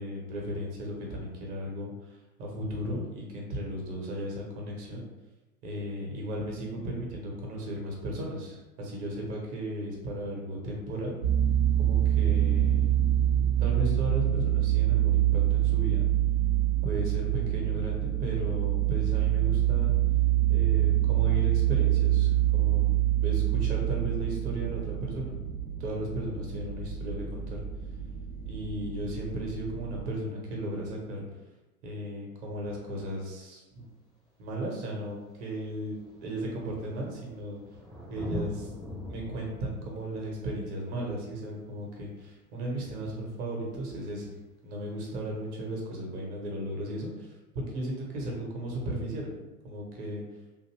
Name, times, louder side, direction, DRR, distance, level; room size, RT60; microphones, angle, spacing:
voice 1, 0.0-1.9 2.4-5.1 5.6-11.2 11.8-12.9 13.6-16.1 16.8-19.9 20.5-22.9 23.2-25.4 25.8-27.6 28.4-31.2 31.8-33.9 34.4-37.6 38.1-38.7 39.1-44.3 44.6-47.3 47.7-49.3 49.6-50.2, right 1 dB, 50° right, -1 dB, 1.0 m, -35 dB
sound 1, 11.2-30.0, right 12 dB, 75° right, 0.7 m, -26 dB
Thunder, 33.8-33.9 34.9-35.0 35.2-42.5 44.2-44.3, equal, ahead, 0.5 m, -43 dB
2.6 x 2.6 x 3.0 m, 1.1 s
figure-of-eight pair, 85°, 44 cm